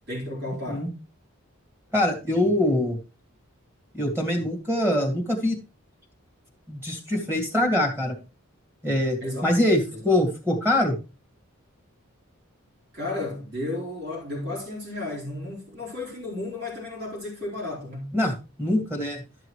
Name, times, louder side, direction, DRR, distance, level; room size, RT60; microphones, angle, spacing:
voice 1, 0.1-0.9 9.2-9.5 9.9-10.2 12.9-18.1, left 2 dB, 50° right, 4.3 m, -33 dB
voice 2, 1.9-3.0 3.9-5.6 6.7-8.2 8.8-10.9 18.1-18.3 18.6-19.2, left 1 dB, 10° right, 2.0 m, -23 dB
12.0 x 6.7 x 3.2 m
head